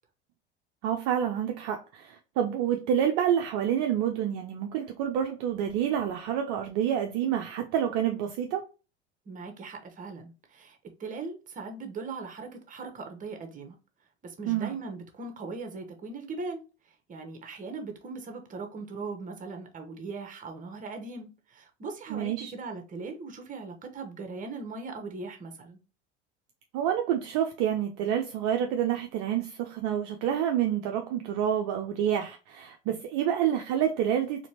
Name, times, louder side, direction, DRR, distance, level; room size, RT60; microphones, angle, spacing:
voice 1, 0.8-8.6 14.5-14.8 22.1-22.5 26.7-34.5, right 9 dB, 45° right, 0.6 m, -28 dB
voice 2, 9.3-13.8 14.2-16.6 17.1-25.8, right 4 dB, 25° right, 1.0 m, -39 dB
4.2 x 2.9 x 2.9 m
figure-of-eight pair, 75°, 34 cm